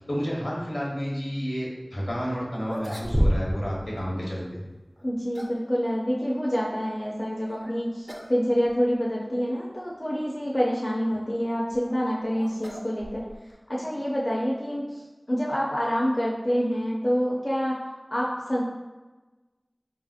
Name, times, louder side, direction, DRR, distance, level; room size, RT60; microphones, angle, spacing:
voice 1, 0.1-4.6, equal, 75° left, -5 dB, 0.8 m, -30 dB
sound 1, 2.1-2.2 2.6-3.7 4.0-4.1 5.0-5.7 7.5-7.7 8.1-8.4 8.7-8.8 9.6-9.7 11.4-13.6, equal, 15° right, 0.4 m, -30 dB
voice 2, 5.0-13.3 13.7-14.9 15.3-17.8 18.1-18.6, equal, 50° left, -5 dB, 0.5 m, -27 dB
3.2 x 2.7 x 2.4 m, 1.2 s
wide cardioid pair, 40°, 0 cm